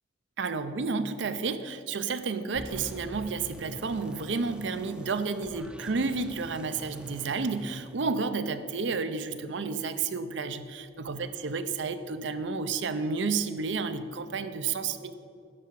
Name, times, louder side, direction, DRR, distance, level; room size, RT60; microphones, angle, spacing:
voice 1, 0.4-15.1, right 4 dB, 70° right, 10 dB, 0.6 m, -31 dB
sound 1, 2.5-8.7, equal, 5° right, 0.6 m, -45 dB
11.0 x 7.0 x 4.7 m, 2.5 s
head